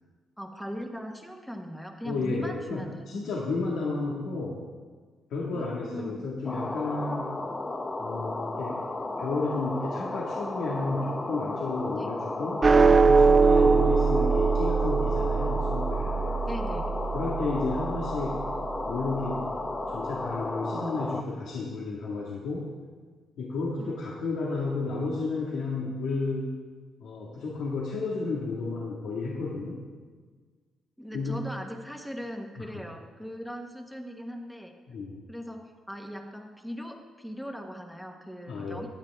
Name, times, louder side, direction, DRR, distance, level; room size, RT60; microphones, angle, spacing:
voice 1, 0.4-3.3 5.5-5.6 5.9-6.3 12.0-12.1 16.5-16.8 23.8-24.0 31.0-34.7 35.3-38.9, equal, ahead, 3 dB, 1.3 m, -39 dB
voice 2, 2.0-4.6 5.3-7.4 8.0-8.8 9.2-16.4 17.1-18.4 18.9-19.5 19.9-22.7 23.4-26.5 27.0-29.8 31.1-31.4 32.6-32.7 34.9-35.2 38.5-38.9, left 3 dB, 80° left, -4 dB, 1.9 m, -32 dB
sound 1, 6.5-21.2, left 2 dB, 20° left, 0.8 m, -34 dB
sound 2, 12.6-19.2, right 4 dB, 25° right, 0.3 m, -23 dB
16.0 x 10.5 x 3.6 m, 1.5 s
cardioid pair, 140°, 0 cm